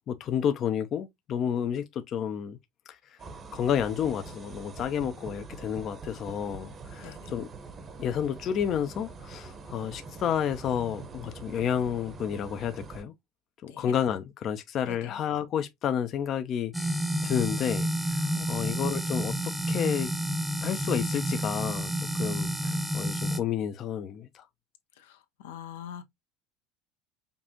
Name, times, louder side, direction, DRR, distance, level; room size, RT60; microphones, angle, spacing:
voice 1, 0.1-2.6 3.5-7.5 8.0-13.1 13.6-16.9 17.2-20.1 20.6-21.9 22.2-24.4, left 8 dB, 50° left, 0.6 m, -30 dB
sound 1, 3.2-13.0, right 4 dB, 35° right, 0.9 m, -44 dB
voice 2, 7.0-7.3 13.7-13.9 14.8-15.1 18.3-18.7 25.0-26.0, left 9 dB, 85° left, 0.7 m, -44 dB
sound 2, 16.7-23.4, equal, ahead, 0.8 m, -30 dB
5.3 x 2.5 x 2.8 m
supercardioid pair, 90°, 0 cm